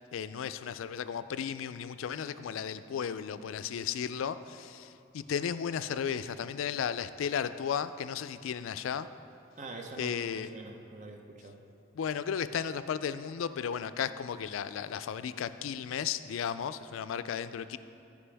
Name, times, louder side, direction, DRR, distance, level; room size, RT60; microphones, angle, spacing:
voice 1, 0.1-9.1 10.0-10.5 11.9-17.8, left 7 dB, 85° left, 13 dB, 0.3 m, -34 dB
voice 2, 9.6-11.6, right 2 dB, 40° right, 3 dB, 0.8 m, -44 dB
15.0 x 5.2 x 3.4 m, 2.7 s
head